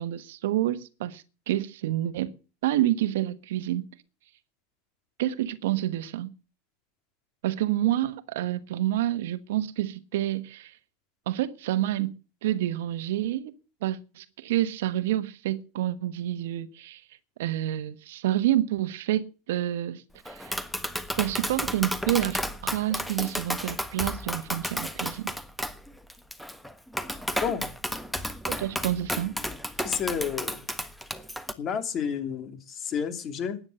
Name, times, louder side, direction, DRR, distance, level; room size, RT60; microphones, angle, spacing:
voice 1, 0.0-2.3 2.6-3.9 5.2-6.3 7.4-10.7 11.3-13.5 13.8-17.0 17.4-20.6 21.2-25.3 28.5-29.3, right 13 dB, 75° right, 1.2 m, -28 dB
Tap, 20.3-31.5, equal, ahead, 1.4 m, -33 dB
voice 2, 29.8-30.6 31.6-33.6, left 7 dB, 35° left, 2.8 m, -30 dB
13.0 x 9.6 x 7.8 m
hypercardioid pair, 105°, 0 cm